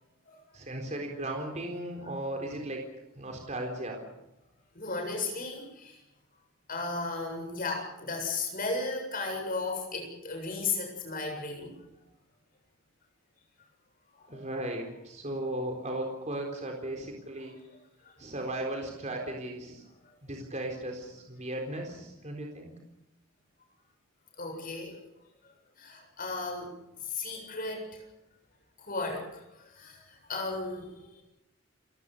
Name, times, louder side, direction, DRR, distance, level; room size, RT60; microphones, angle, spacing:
voice 1, 0.5-2.8 3.1-4.0 14.3-17.6 18.2-19.8 20.2-22.7, right 1 dB, 30° right, 2 dB, 4.0 m, -36 dB
voice 2, 4.7-6.0 6.7-11.7 14.3-14.4 18.0-18.1 24.4-25.0 25.8-26.7 27.0-28.0 28.8-31.2, left 3 dB, 40° left, 3 dB, 7.6 m, -35 dB
30.0 x 18.0 x 6.9 m, 0.89 s
head